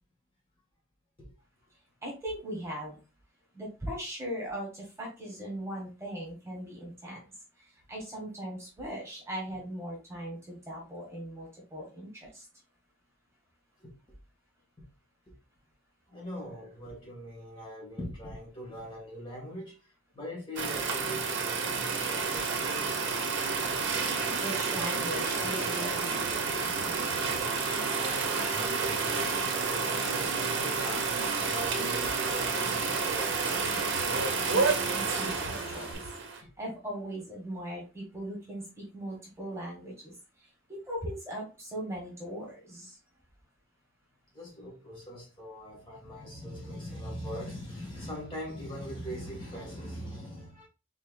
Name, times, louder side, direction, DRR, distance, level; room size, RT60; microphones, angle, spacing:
voice 1, 2.0-3.0 3.5-7.2 7.6-12.5 24.4-26.2 34.5-36.1 36.3-40.1 40.4-43.0, right 1 dB, 15° right, 1.4 m, -39 dB
voice 2, 13.8-14.2 14.8-14.9 15.3-15.4 16.1-23.3 26.9-33.3 44.3-50.7, equal, 25° left, 1.7 m, -42 dB
sound 1, 20.6-36.4, right 5 dB, 55° right, 0.8 m, -30 dB
sound 2, 22.2-35.9, left 3 dB, 80° left, 0.9 m, -45 dB
4.3 x 3.8 x 2.3 m
head